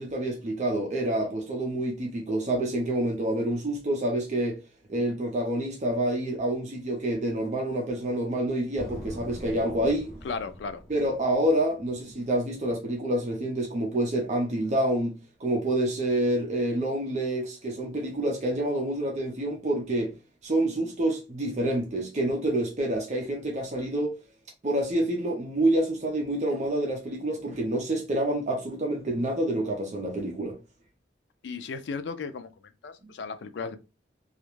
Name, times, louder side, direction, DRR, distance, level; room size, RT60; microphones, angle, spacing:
voice 1, 0.0-4.6 4.9-10.2 10.9-15.1 15.4-20.1 20.4-24.1 24.6-30.6, right 1 dB, 40° right, 0.5 m, -27 dB
sound 1, 8.8-12.5, left 1 dB, ahead, 1.0 m, -43 dB
voice 2, 10.2-10.8 31.4-32.5 32.8-33.8, left 4 dB, 80° left, 0.3 m, -35 dB
2.3 x 2.0 x 3.0 m
head